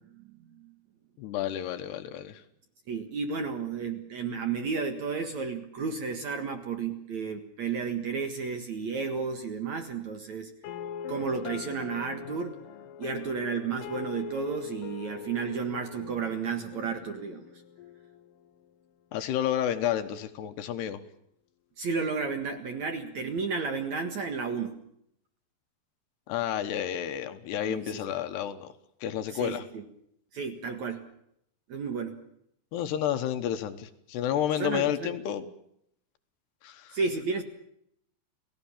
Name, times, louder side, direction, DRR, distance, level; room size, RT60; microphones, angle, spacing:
voice 1, 0.1-0.7 2.9-10.5 11.1-12.5 13.0-17.5 21.8-24.8 27.7-28.0 29.3-29.8 30.3-31.1 31.7-32.2 34.6-35.1 36.9-37.4, right 5 dB, 60° right, 6 dB, 2.0 m, -32 dB
voice 2, 1.2-2.4 19.1-21.0 26.3-28.7 29.0-29.6 32.7-35.5 36.6-37.0, left 10 dB, 70° left, 9 dB, 2.9 m, -30 dB
sound 1, 10.6-18.6, left 7 dB, 85° left, 3.7 m, -41 dB
30.0 x 18.0 x 7.4 m, 0.75 s
omnidirectional pair, 5.7 m